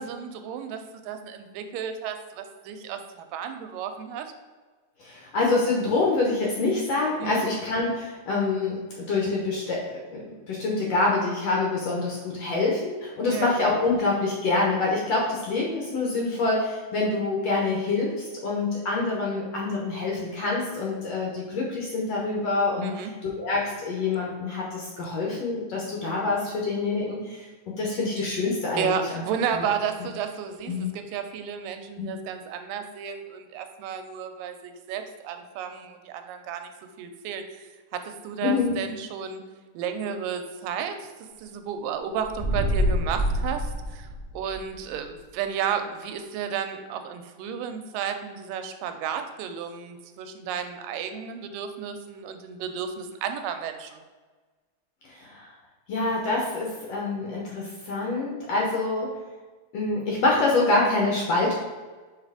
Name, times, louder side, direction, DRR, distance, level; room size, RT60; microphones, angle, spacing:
voice 1, 0.0-4.3 7.2-7.5 13.3-13.6 22.8-23.1 28.8-36.7 37.0-39.4 39.7-41.1 41.4-44.1 44.3-54.0, right 7 dB, 90° right, 7 dB, 2.3 m, -32 dB
voice 2, 5.0-29.2 29.5-29.6 30.7-30.9 32.0-32.1 38.4-38.8 55.0-55.5 55.9-59.1 59.7-61.5, left 3 dB, 65° left, -2 dB, 1.7 m, -26 dB
sound 1, 42.2-44.7, equal, 30° right, 0.4 m, -26 dB
5.4 x 4.1 x 4.8 m, 1.4 s
omnidirectional pair, 3.9 m